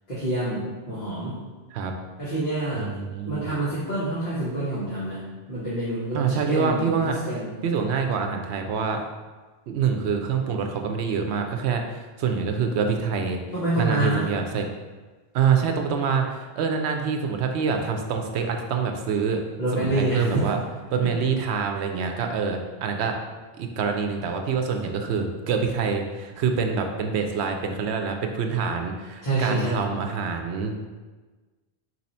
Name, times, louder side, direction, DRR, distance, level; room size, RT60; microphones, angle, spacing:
voice 1, 0.1-1.4 2.2-2.9 3.2-7.5 13.5-14.2 19.6-20.6 21.0-21.1 29.2-29.8, right 2 dB, 45° left, -9 dB, 1.1 m, -27 dB
voice 2, 2.7-3.5 6.1-7.2 7.6-9.0 9.7-13.4 13.8-14.6 15.3-19.4 19.7-20.6 20.9-23.2 23.5-30.7, right 6 dB, 80° right, 4 dB, 0.8 m, -26 dB
4.6 x 2.7 x 4.2 m, 1.3 s
omnidirectional pair, 1.1 m